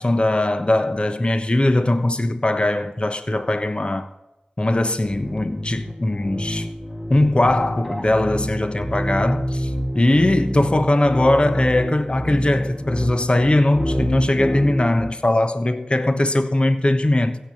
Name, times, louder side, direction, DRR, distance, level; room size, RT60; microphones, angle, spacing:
voice 1, 0.0-4.1 4.6-6.7 7.1-17.4, left 1 dB, 35° left, 1.1 m, -20 dB
sound 1, 5.1-15.1, equal, 15° left, 1.5 m, -27 dB
16.0 x 6.9 x 7.3 m
cardioid pair, 40°, 3 cm